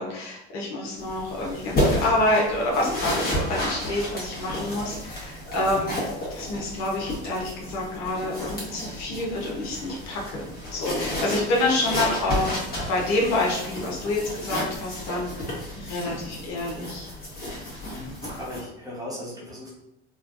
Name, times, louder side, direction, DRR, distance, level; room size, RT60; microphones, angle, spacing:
voice 1, 0.0-6.0 6.3-12.5 12.9-17.1, left 2 dB, 60° left, -3 dB, 1.0 m, -27 dB
sound 1, 1.0-18.6, left 1 dB, 30° left, 1.3 m, -32 dB
voice 2, 17.9-19.7, left 1 dB, 10° right, -6 dB, 1.0 m, -37 dB
3.3 x 2.3 x 2.5 m, 0.85 s
supercardioid pair, 100°, 32 cm